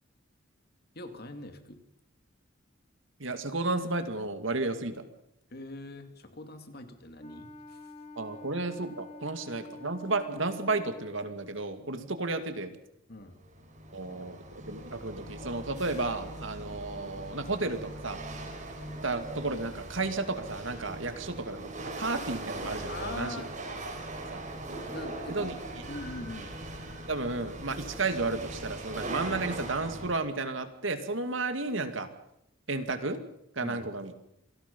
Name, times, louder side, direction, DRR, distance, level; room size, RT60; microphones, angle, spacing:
voice 1, 0.9-1.8 5.5-7.9 13.1-13.4 22.9-23.5 24.9-25.6 25.9-26.5 33.6-33.8, left 2 dB, 50° left, 7 dB, 2.6 m, -42 dB
voice 2, 3.2-5.0 8.2-12.7 13.9-14.4 14.7-18.2 19.0-23.4 24.3-24.4 25.3-25.5 27.1-32.1 32.7-33.2 33.5-34.1, right 3 dB, 65° right, 8 dB, 2.3 m, -32 dB
Wind instrument woodwind instrument, 7.2-11.4, left 2 dB, 35° left, 2.1 m, -47 dB
Chatter / Hiss / Rattle, 13.3-30.2, right 2 dB, 35° right, 5.1 m, -40 dB
27.5 x 18.5 x 5.5 m, 0.81 s
head